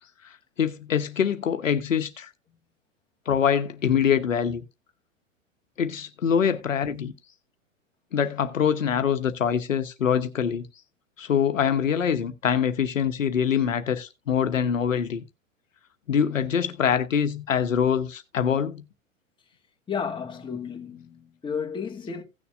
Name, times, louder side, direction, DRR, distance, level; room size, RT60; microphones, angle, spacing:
voice 1, 0.6-2.3 3.3-4.6 5.8-7.1 8.1-10.7 11.2-15.2 16.1-18.8, left 7 dB, 75° left, 1.1 m, -24 dB
voice 2, 19.9-22.2, left 6 dB, 10° left, 1.6 m, -32 dB
16.5 x 6.8 x 2.5 m
figure-of-eight pair, 100°, 40 cm